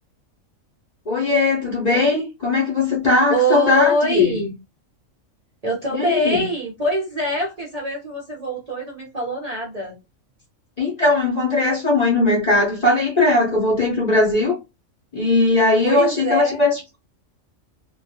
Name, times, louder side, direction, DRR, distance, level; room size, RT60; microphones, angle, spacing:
voice 1, 1.1-4.4 5.9-6.4 10.8-14.6 15.1-17.0, left 2 dB, 45° left, 0.6 m, -19 dB
voice 2, 3.3-4.5 5.6-9.9 15.8-16.6, right 1 dB, 45° right, 0.5 m, -24 dB
2.3 x 2.2 x 2.6 m
omnidirectional pair, 1.4 m